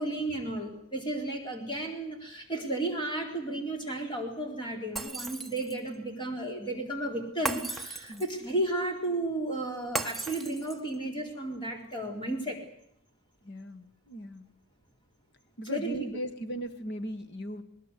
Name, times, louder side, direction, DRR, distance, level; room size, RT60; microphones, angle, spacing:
voice 1, 0.0-12.6 15.7-16.0, right 1 dB, 20° left, 2 dB, 4.0 m, -33 dB
Shatter, 5.0-5.9 7.5-8.4 10.0-11.0, right 2 dB, ahead, 1.4 m, -36 dB
voice 2, 13.4-14.5 15.6-17.6, right 1 dB, 50° left, 10 dB, 1.6 m, -38 dB
20.5 x 19.5 x 8.3 m, 0.71 s
head